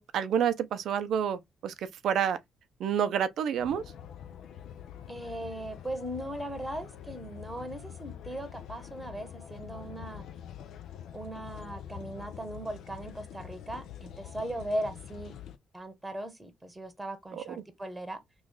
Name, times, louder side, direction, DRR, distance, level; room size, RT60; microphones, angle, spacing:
voice 1, 0.0-1.7 2.0-2.4 2.8-3.8 17.3-17.4, right 8 dB, 70° right, 0.5 m, -28 dB
sound 1, 3.6-15.6, left 9 dB, 75° left, 0.4 m, -45 dB
voice 2, 5.1-10.2 11.1-15.4 15.7-18.2, right 1 dB, 10° right, 1.0 m, -38 dB
3.1 x 2.3 x 3.6 m
cardioid pair, 90°, 0 cm